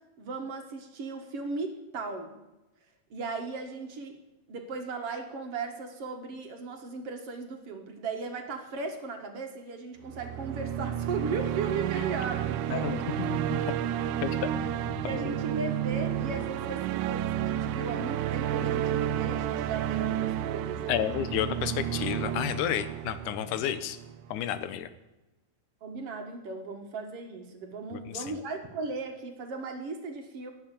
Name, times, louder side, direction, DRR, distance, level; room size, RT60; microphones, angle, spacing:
voice 1, 0.2-2.4 3.1-4.2 4.5-12.9 15.0-21.1 25.8-30.5, right 4 dB, 55° right, 4 dB, 2.5 m, -37 dB
sound 1, 10.0-24.2, right 11 dB, 90° right, 2.2 m, -31 dB
voice 2, 12.7-13.6 14.2-15.2 20.9-24.0 24.3-24.9 28.1-28.3, left 11 dB, 85° left, 12 dB, 2.3 m, -31 dB
18.5 x 7.3 x 8.6 m, 1.0 s
omnidirectional pair, 3.4 m